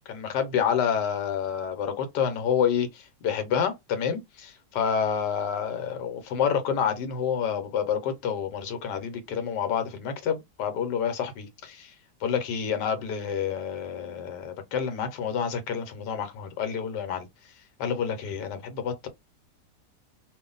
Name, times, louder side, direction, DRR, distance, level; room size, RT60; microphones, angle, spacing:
voice 1, 0.1-11.9 12.2-17.3 17.8-19.1, left 7 dB, 75° left, 1.3 m, -28 dB
2.6 x 2.5 x 3.8 m
omnidirectional pair, 1.8 m